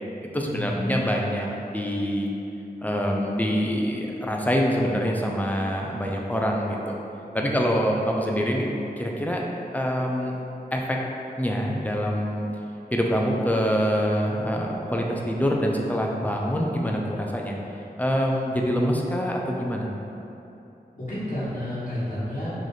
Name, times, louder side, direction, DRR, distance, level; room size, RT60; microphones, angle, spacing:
voice 1, 0.3-2.3 2.8-7.0 7.3-8.7 9.0-9.4 9.7-10.3 10.7-11.0 11.4-12.5 12.9-17.6 18.0-19.9, equal, 10° left, -1 dB, 0.4 m, -25 dB
voice 2, 21.0-22.5, left 1 dB, 50° left, -11 dB, 1.2 m, -30 dB
3.1 x 2.5 x 3.9 m, 2.9 s
wide cardioid pair, 50°, 16 cm